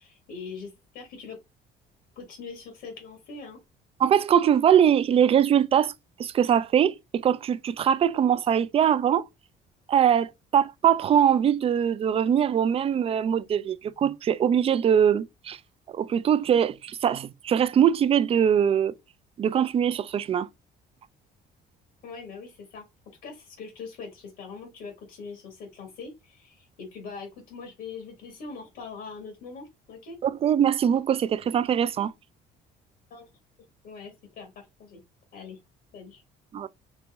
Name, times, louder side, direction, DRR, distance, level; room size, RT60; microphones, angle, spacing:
voice 1, 0.0-1.4 2.1-3.6 22.0-22.8 23.2-30.2 33.1-33.3 33.8-35.0 35.3-35.6 35.9-36.2, left 5 dB, 80° left, 1.4 m, -42 dB
voice 2, 4.0-5.9 6.2-9.2 9.9-15.6 15.9-18.9 19.4-20.5 30.2-32.1 36.5-36.7, right 9 dB, 35° right, 0.3 m, -22 dB
4.1 x 3.0 x 3.4 m
cardioid pair, 110°, 17 cm